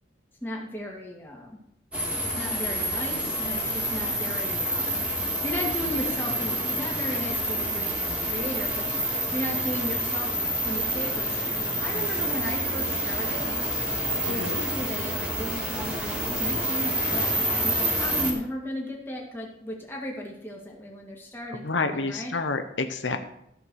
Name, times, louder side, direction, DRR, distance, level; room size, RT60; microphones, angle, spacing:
voice 1, 0.4-1.6 2.3-10.3 10.6-13.5 14.2-22.3, left 1 dB, 10° left, -2 dB, 2.3 m, -36 dB
sound 1, 1.9-18.3, right 1 dB, 5° right, 2.2 m, -28 dB
voice 2, 14.3-14.6 21.6-23.2, left 3 dB, 90° left, 7 dB, 1.0 m, -29 dB
14.5 x 5.0 x 6.4 m, 0.78 s
head